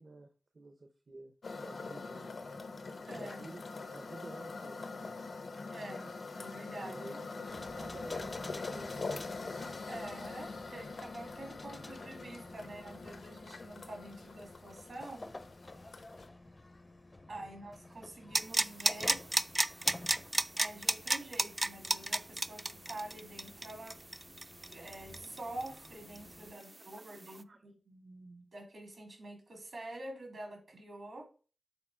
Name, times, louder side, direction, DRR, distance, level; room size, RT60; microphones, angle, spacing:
voice 1, 0.0-1.3 1.6-2.4 3.2-3.6 3.9-5.2 6.8-7.3 7.7-9.3 12.6-12.7 17.4-17.6 26.5-26.6 27.3-27.6, right 2 dB, 55° right, 7 dB, 0.7 m, -51 dB
sound 1, 1.4-16.3, left 3 dB, 85° left, 0.8 m, -43 dB
voice 2, 3.1-3.5 5.7-7.5 9.9-15.3 17.3-19.2 20.6-24.0 24.7-31.3, right 1 dB, 75° right, 3 dB, 2.3 m, -47 dB
sound 2, 7.5-26.5, left 2 dB, 30° left, 0.5 m, -52 dB
sound 3, 18.3-25.9 26.1-26.2, right 2 dB, 25° right, 0.3 m, -31 dB
6.9 x 3.7 x 4.9 m, 0.37 s
wide cardioid pair, 90°, 0 cm